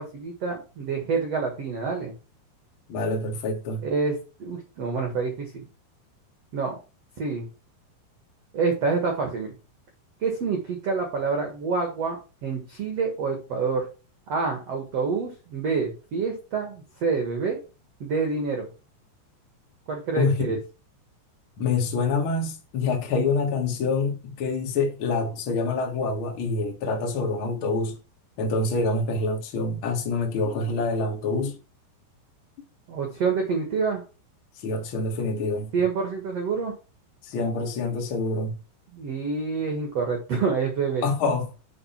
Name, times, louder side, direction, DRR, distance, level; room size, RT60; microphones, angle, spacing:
voice 1, 0.0-2.1 3.8-5.7 6.5-6.7 7.2-7.5 8.5-9.5 10.2-12.2 12.4-13.9 14.3-17.6 18.0-18.7 19.9-20.6 32.9-34.0 35.7-36.7 38.9-41.0, right 4 dB, 80° right, 1.4 m, -27 dB
voice 2, 2.9-3.9 20.2-20.6 21.6-28.0 28.4-31.6 34.6-35.7 37.2-38.6 41.0-41.5, left 3 dB, 80° left, 1.1 m, -26 dB
7.8 x 5.0 x 5.8 m
omnidirectional pair, 5.5 m